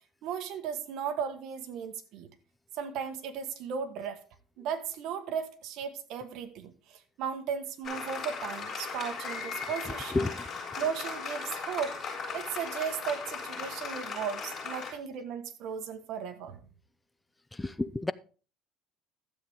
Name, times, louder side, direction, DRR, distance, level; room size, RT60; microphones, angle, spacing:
voice 1, 0.2-2.3 2.7-4.2 4.6-10.3 10.8-11.9 12.3-16.6, right 7 dB, 60° right, 1.4 m, -36 dB
Applause, 7.8-14.9, left 5 dB, 30° left, 6.2 m, -38 dB
voice 2, 17.5-18.1, left 2 dB, 10° left, 0.4 m, -30 dB
12.5 x 7.8 x 3.6 m
cardioid pair, 140°, 0 cm